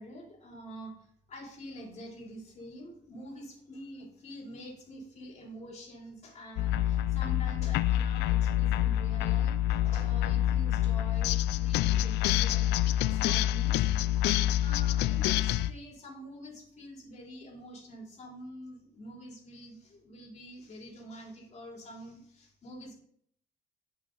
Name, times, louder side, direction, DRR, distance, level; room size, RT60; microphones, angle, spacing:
voice 1, 0.0-13.8 14.6-22.9, equal, 40° left, -2 dB, 3.4 m, -46 dB
sound 1, 6.6-15.7, left 12 dB, 85° left, 0.4 m, -27 dB
9.5 x 5.9 x 3.9 m, 0.67 s
cardioid pair, 110°, 17 cm